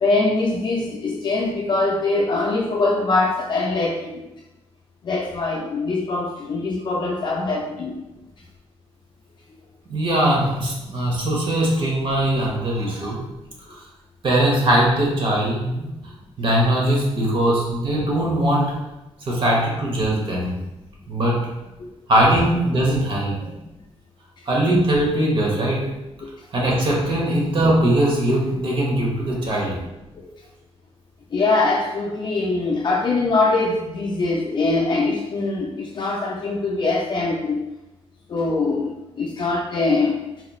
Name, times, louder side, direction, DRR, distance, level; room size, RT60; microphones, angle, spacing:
voice 1, 0.0-4.2 5.0-7.9 21.8-21.9 31.3-37.6 38.3-38.9 39.2-40.2, left 3 dB, 45° left, -2 dB, 0.4 m, -22 dB
voice 2, 9.9-13.2 13.7-13.8 14.2-15.9 16.4-18.7 19.3-20.5 21.1-21.5 22.1-23.5 24.4-25.9 26.5-29.7, right 1 dB, 50° right, -3 dB, 1.1 m, -20 dB
4.1 x 2.9 x 2.3 m, 1.0 s
cardioid pair, 125°, 11 cm